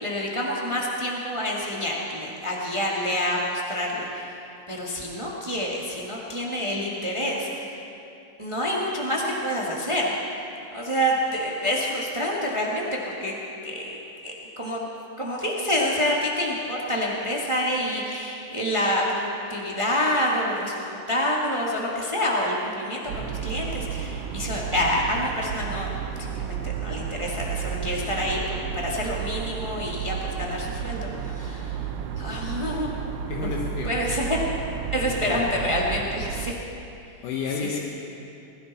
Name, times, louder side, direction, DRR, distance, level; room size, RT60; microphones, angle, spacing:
voice 1, 0.0-4.4 4.7-7.7 8.4-10.1 10.7-13.3 13.6-14.8 15.2-31.8 32.2-32.9 33.3-33.5 33.8-34.4 34.9-36.5 37.6-37.8, left 1 dB, 40° right, -3 dB, 0.4 m, -27 dB
sound 1, 23.1-36.5, right 8 dB, 90° right, 1.3 m, -32 dB
voice 2, 33.3-33.9 35.1-35.4 37.2-37.8, left 5 dB, 80° left, -1 dB, 2.4 m, -31 dB
20.0 x 14.5 x 4.1 m, 2.7 s
omnidirectional pair, 3.6 m